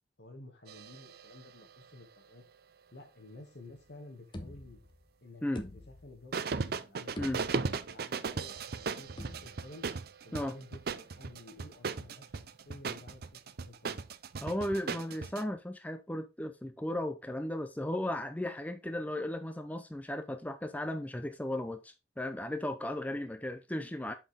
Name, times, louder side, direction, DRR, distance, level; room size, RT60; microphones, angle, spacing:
voice 1, 0.2-2.4 2.9-4.8 5.2-5.5 5.7-9.9 10.2-14.0 23.1-23.2, left 2 dB, 65° left, 2.2 m, -52 dB
sound 1, 0.7-2.1 6.3-15.4, right 4 dB, 60° right, 0.5 m, -37 dB
sound 2, 3.8-3.9 4.3-5.1 5.6-6.4 6.8-6.9 7.2-7.9 9.2-9.8, left 1 dB, 30° left, 1.0 m, -46 dB
voice 2, 14.4-24.1, left 1 dB, 10° left, 0.5 m, -36 dB
6.8 x 5.6 x 3.6 m
head